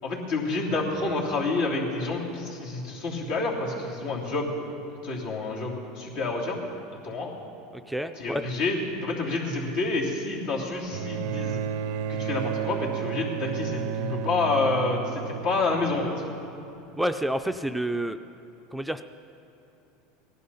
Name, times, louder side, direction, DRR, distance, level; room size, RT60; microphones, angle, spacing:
voice 1, 0.0-4.6 5.0-6.6 6.9-7.3 8.2-11.6 12.1-16.1, left 3 dB, 75° left, -3 dB, 3.1 m, -28 dB
voice 2, 7.7-8.4 17.0-18.2 18.7-19.0, right 1 dB, 5° right, 7 dB, 0.4 m, -29 dB
Bowed string instrument, 10.9-16.4 17.5-17.6, right 9 dB, 75° right, 0.5 m, -32 dB
17.5 x 11.5 x 5.6 m, 2.9 s
supercardioid pair, 115°, 0 cm